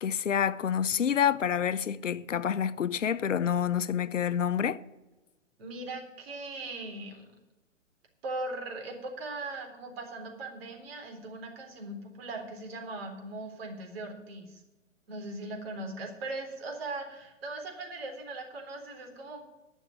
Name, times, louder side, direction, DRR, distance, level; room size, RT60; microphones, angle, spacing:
voice 1, 0.0-4.8, left 8 dB, 75° left, 0.7 m, -28 dB
voice 2, 5.6-7.2 8.2-14.6 15.1-19.4, right 2 dB, 50° right, 3.9 m, -39 dB
12.0 x 6.5 x 9.0 m
figure-of-eight pair, 125°, 37 cm